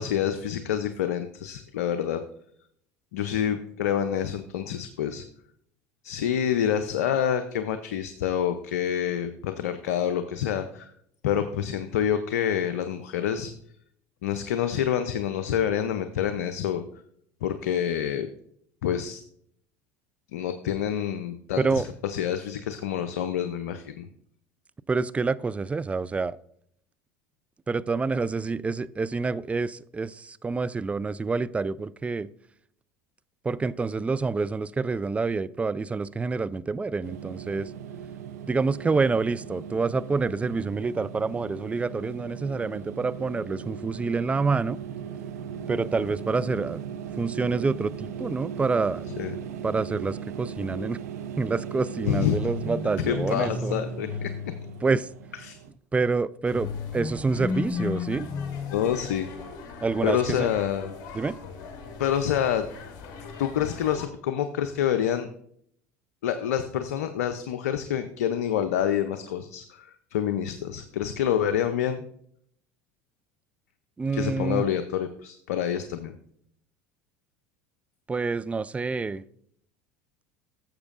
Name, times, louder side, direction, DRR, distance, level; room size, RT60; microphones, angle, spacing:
voice 1, 0.0-2.2 3.1-5.2 6.0-10.9 11.2-13.5 14.2-16.8 17.4-18.3 18.8-19.2 20.3-24.0 49.2-49.3 52.0-52.4 53.1-54.3 55.4-55.6 58.7-59.3 60.0-61.2 62.0-62.7 63.4-65.3 66.2-72.0 74.1-76.1, left 9 dB, 80° left, 0.5 m, -27 dB
voice 2, 21.6-21.9 24.9-26.4 27.7-32.3 33.4-37.7 38.5-44.8 45.7-46.8 47.2-49.0 49.6-51.0 51.4-53.7 54.8-55.1 55.9-58.3 59.8-60.5 61.1-61.4 74.0-74.6 78.1-79.2, right 4 dB, 15° right, 0.3 m, -27 dB
sound 1, 37.0-55.7, right 8 dB, 85° right, 0.7 m, -38 dB
sound 2, 52.3-55.4 56.5-59.5, left 5 dB, 30° left, 1.0 m, -34 dB
sound 3, 56.5-64.1, left 5 dB, 55° left, 1.8 m, -42 dB
13.0 x 7.2 x 2.5 m
hypercardioid pair, 80°, 8 cm